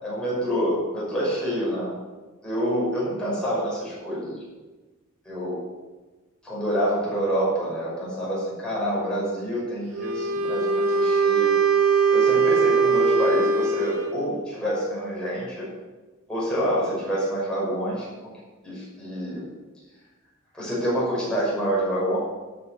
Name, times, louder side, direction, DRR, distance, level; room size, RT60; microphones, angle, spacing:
voice 1, 0.0-2.0 2.4-4.4 5.2-5.6 6.4-11.6 12.1-15.7 16.3-18.3 18.6-19.4 20.5-22.2, equal, 5° left, -7 dB, 5.7 m, -27 dB
Wind instrument woodwind instrument, 9.9-14.3, right 4 dB, 85° right, 1.2 m, -21 dB
14.0 x 8.5 x 6.7 m, 1.2 s
head